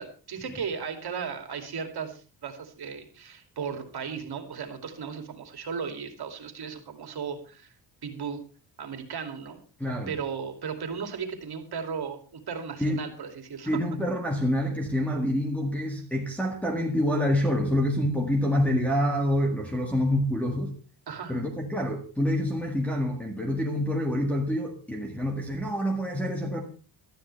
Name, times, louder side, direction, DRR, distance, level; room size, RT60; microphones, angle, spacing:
voice 1, 0.0-7.7 8.0-8.4 8.8-9.6 10.1-13.8 21.1-21.4, right 6 dB, 50° right, 6 dB, 2.6 m, -36 dB
voice 2, 9.8-10.1 12.8-13.0 13.7-20.7 21.3-26.6, equal, 5° left, -2 dB, 1.8 m, -27 dB
18.5 x 12.5 x 3.4 m, 0.37 s
wide cardioid pair, 160°, 48 cm